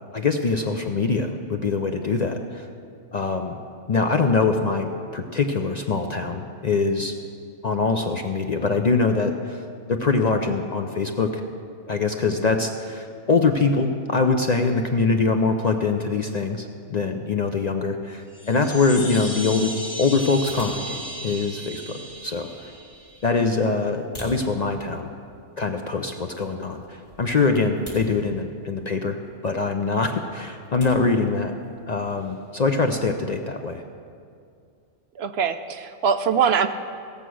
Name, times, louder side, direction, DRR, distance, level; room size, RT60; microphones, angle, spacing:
voice 1, 0.1-2.7 3.1-3.6 3.9-7.2 7.6-9.6 9.9-11.4 11.9-19.7 20.0-22.7 23.2-25.1 25.6-29.2 29.4-31.5 31.9-33.8, left 4 dB, 45° left, 4 dB, 0.5 m, -23 dB
sound 1, 18.3-23.3, right 1 dB, 70° left, 1.7 m, -36 dB
sound 2, 18.4-33.7, equal, 25° left, 4.1 m, -49 dB
voice 2, 35.2-36.7, right 7 dB, 65° right, 9 dB, 0.7 m, -22 dB
17.0 x 6.8 x 6.2 m, 2.3 s
omnidirectional pair, 1.2 m